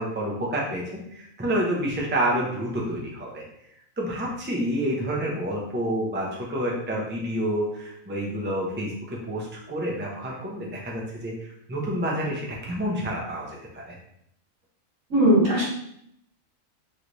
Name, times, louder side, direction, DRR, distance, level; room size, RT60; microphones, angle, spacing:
voice 1, 0.0-3.4 4.0-13.9, right 1 dB, 10° right, -3 dB, 0.6 m, -29 dB
voice 2, 15.1-15.6, equal, 75° right, -4 dB, 1.8 m, -18 dB
3.2 x 3.2 x 3.9 m, 0.74 s
omnidirectional pair, 1.4 m